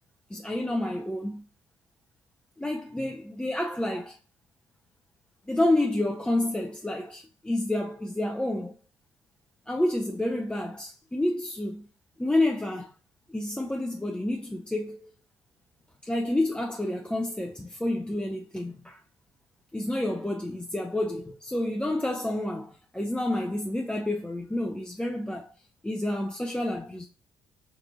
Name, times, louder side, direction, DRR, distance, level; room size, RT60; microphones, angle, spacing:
voice 1, 0.3-1.5 2.6-4.2 5.5-8.8 9.7-11.9 12.2-12.9 13.3-15.1 16.0-19.0 19.7-25.5 25.8-27.1, left 1 dB, 5° left, 0.4 m, -29 dB
3.9 x 2.6 x 2.3 m
figure-of-eight pair, 45°, 14 cm